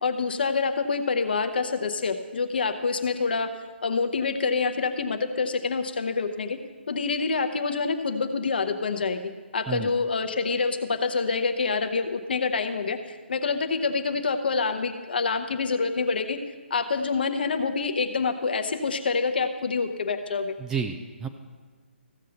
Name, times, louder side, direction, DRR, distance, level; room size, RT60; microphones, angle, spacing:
voice 1, 0.0-3.5 3.8-6.6 6.9-9.2 9.5-16.4 16.7-20.5, left 4 dB, 55° left, 7 dB, 0.8 m, -26 dB
voice 2, 20.6-21.3, right 6 dB, 10° right, 4 dB, 0.3 m, -30 dB
14.5 x 7.4 x 4.0 m, 1.4 s
figure-of-eight pair, 135°, 6 cm